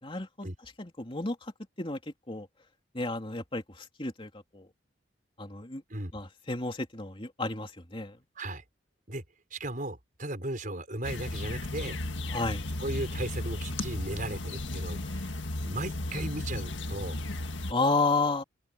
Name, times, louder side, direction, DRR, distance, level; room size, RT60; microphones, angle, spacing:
voice 1, 0.0-0.5 0.8-1.5 1.8-2.0 2.3-2.5 2.9-4.7 5.4-5.8 6.1-8.2 12.3-12.6 17.7-18.4, left 3 dB, 30° left, 3.1 m, -31 dB
voice 2, 9.5-12.0 12.8-15.4 15.6-17.2, right 1 dB, 45° right, 5.7 m, -36 dB
sound 1, 11.0-17.7, left 2 dB, 80° left, 1.7 m, -35 dB
head